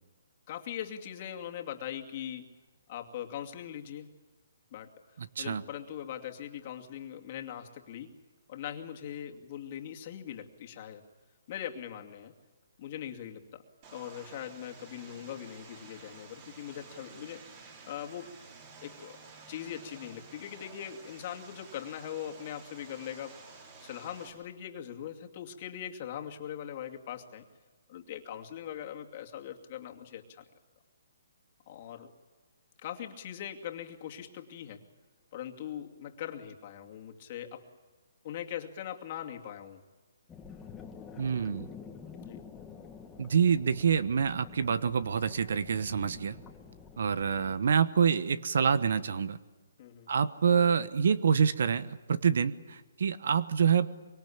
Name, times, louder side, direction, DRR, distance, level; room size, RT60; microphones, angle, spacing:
voice 1, 0.5-2.4 2.9-4.1 4.7-4.9 5.4-8.1 8.5-11.0 11.5-12.3 12.8-13.6 13.9-17.5 17.8-18.3 18.8-19.2 19.5-23.4 23.8-27.4 27.9-30.4 31.7-32.1 32.8-34.8 35.3-37.6 38.2-39.8 42.2-42.4 49.8-50.1, left 10 dB, 40° left, 3 dB, 2.5 m, -41 dB
voice 2, 5.2-5.6 41.2-41.7 43.2-46.4 47.0-49.4 50.1-53.9, right 7 dB, 65° right, 15 dB, 1.1 m, -27 dB
Vehicle, 13.8-24.3, right 4 dB, 35° right, 5.9 m, -52 dB
sound 1, 40.3-47.6, left 6 dB, 10° left, 1.8 m, -48 dB
24.5 x 24.0 x 8.7 m, 1.2 s
hypercardioid pair, 155°, 0 cm